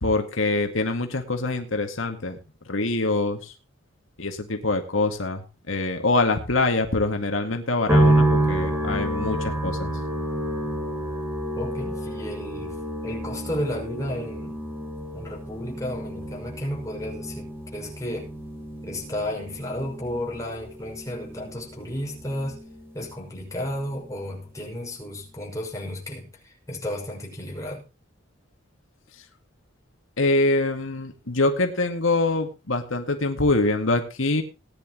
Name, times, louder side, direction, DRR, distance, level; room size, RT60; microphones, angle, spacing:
voice 1, 0.0-2.4 2.7-3.5 4.2-9.9 30.2-34.4, left 2 dB, 80° left, 5 dB, 2.1 m, -24 dB
sound 1, 7.9-23.1 23.4-24.3, right 1 dB, 10° right, 3.6 m, -28 dB
voice 2, 11.6-14.6 15.1-18.3 18.8-22.6 22.9-27.8, left 1 dB, 15° left, -1 dB, 5.7 m, -33 dB
19.0 x 10.5 x 3.0 m, 0.31 s
head